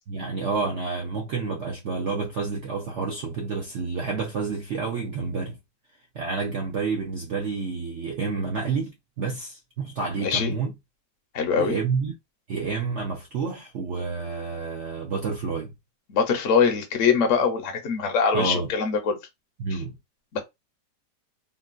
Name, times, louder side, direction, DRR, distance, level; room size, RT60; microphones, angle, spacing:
voice 1, 0.1-5.6 6.1-10.7 11.6-12.1 12.5-15.7 18.3-18.7 19.6-19.9, right 4 dB, 65° right, 0.7 m, -29 dB
voice 2, 10.2-10.6 11.3-11.8 16.1-19.2 20.3-20.4, left 6 dB, 60° left, 0.8 m, -23 dB
3.7 x 2.2 x 2.4 m
omnidirectional pair, 1.9 m